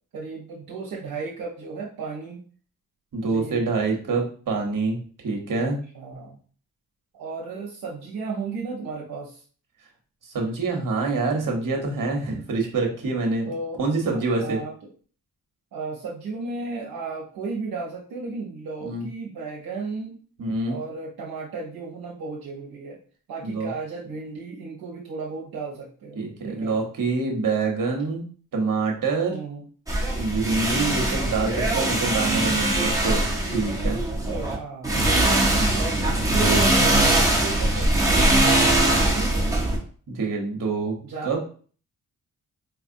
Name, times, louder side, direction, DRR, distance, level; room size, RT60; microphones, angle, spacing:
voice 1, 0.1-2.4 3.3-3.7 5.9-6.4 7.1-9.4 13.4-13.8 14.4-14.9 15.7-20.2 20.7-23.0 23.3-26.7 29.3-29.6 30.7-31.2 34.3-35.1 35.7-39.5 41.0-41.3, right 4 dB, 80° right, -3 dB, 0.8 m, -34 dB
voice 2, 3.1-5.0 5.2-5.8 10.3-13.5 13.8-14.6 18.8-19.1 20.4-20.8 23.4-23.7 26.1-28.2 28.5-29.4 30.2-33.2 33.5-34.0 35.5-35.8 40.1-41.0 41.2-41.5, right 3 dB, 60° right, 1 dB, 1.1 m, -26 dB
sound 1, 29.9-34.6 34.8-39.8, right 1 dB, 10° right, 0.9 m, -21 dB
4.4 x 2.3 x 2.6 m, 0.42 s
cardioid pair, 90°, 36 cm